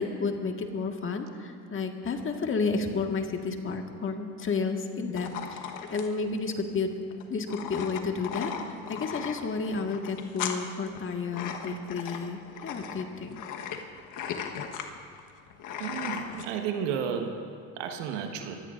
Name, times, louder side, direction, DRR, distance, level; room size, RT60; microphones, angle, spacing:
voice 1, 0.0-6.9 7.3-13.4, left 4 dB, 35° left, 4 dB, 1.7 m, -31 dB
sound 1, 5.2-16.5, left 8 dB, 60° left, 1.3 m, -37 dB
voice 2, 15.8-17.4 17.8-18.6, right 7 dB, 85° right, 5 dB, 1.5 m, -32 dB
23.5 x 16.5 x 2.6 m, 2.4 s
hypercardioid pair, 80°, 35 cm